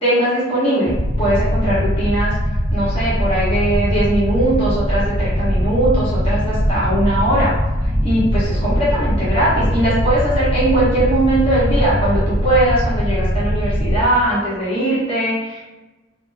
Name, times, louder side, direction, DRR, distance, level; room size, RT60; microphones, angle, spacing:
voice 1, 0.0-7.5 7.8-15.6, right 1 dB, 30° left, -10 dB, 1.4 m, -20 dB
sound 1, 0.9-14.0, equal, 25° right, 0.6 m, -20 dB
3.4 x 2.1 x 3.5 m, 1.1 s
head